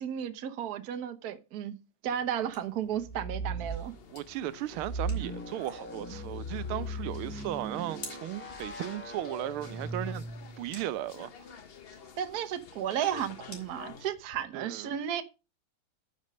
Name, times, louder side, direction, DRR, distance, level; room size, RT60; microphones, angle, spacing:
voice 1, 0.0-1.8 2.0-3.9 12.2-15.2, right 9 dB, 55° right, 1.3 m, -33 dB
sound 1, 2.1-14.5, left 2 dB, 35° left, 3.6 m, -54 dB
sound 2, 3.0-3.9 4.7-10.8, right 2 dB, 10° left, 0.6 m, -38 dB
sound 3, 3.6-14.1, left 6 dB, 70° left, 0.5 m, -51 dB
voice 2, 4.1-10.2 10.6-11.3 14.5-14.9, right 13 dB, 85° right, 1.5 m, -36 dB
9.4 x 5.3 x 6.4 m
omnidirectional pair, 2.3 m